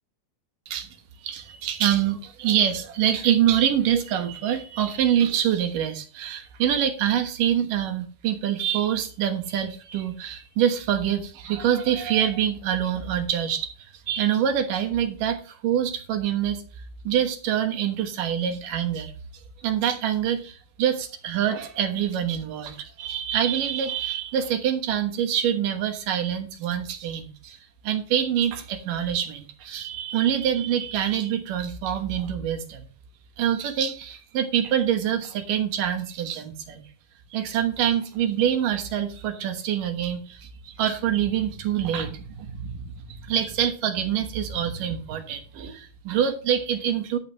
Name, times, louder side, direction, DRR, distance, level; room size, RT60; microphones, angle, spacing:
voice 1, 1.2-16.6 17.0-19.1 19.6-27.6 27.8-32.9 33.4-36.8 37.3-47.2, right 9 dB, 75° right, 5 dB, 2.9 m, -25 dB
11.5 x 8.8 x 3.1 m, 0.38 s
omnidirectional pair, 3.9 m